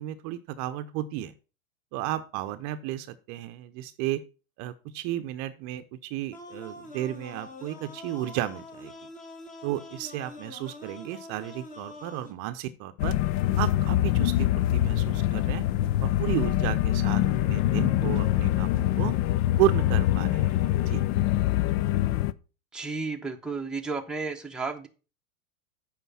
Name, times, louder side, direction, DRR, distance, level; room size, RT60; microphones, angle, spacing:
voice 1, 0.0-1.3 1.9-4.2 4.6-8.9 9.6-13.2 13.6-15.6 16.0-19.1 19.6-21.0, right 14 dB, 40° right, 10 dB, 0.7 m, -33 dB
sound 1, 6.3-12.3, left 2 dB, 15° left, 1.5 m, -44 dB
sound 2, 13.0-22.3, left 14 dB, 45° left, 0.5 m, -24 dB
voice 2, 22.7-24.9, right 4 dB, ahead, 2 dB, 0.9 m, -33 dB
8.1 x 5.2 x 5.7 m, 0.34 s
hypercardioid pair, 110°, 43 cm